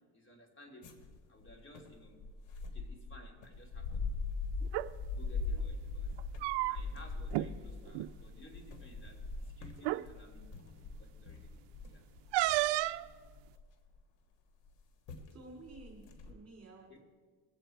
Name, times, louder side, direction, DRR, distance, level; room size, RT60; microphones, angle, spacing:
voice 1, 0.1-1.0 1.3-2.2 2.6-4.2 5.2-6.2 6.6-9.2 9.6-12.0 16.9-17.0, left 1 dB, 25° left, 1 dB, 3.0 m, -57 dB
sound 1, 0.8-14.0 14.7-14.8 15.1-15.3 15.7-16.3, left 4 dB, 70° left, 1.8 m, -41 dB
sound 2, 4.6-4.9 6.1-7.0 7.3-7.5 7.9-8.1 9.1-9.2 9.8-10.0 12.3-13.1, right 18 dB, 65° right, 0.6 m, -31 dB
voice 2, 15.3-17.0, right 2 dB, 35° right, -1 dB, 3.2 m, -52 dB
21.5 x 8.3 x 4.5 m, 1.5 s
cardioid pair, 95°, 45 cm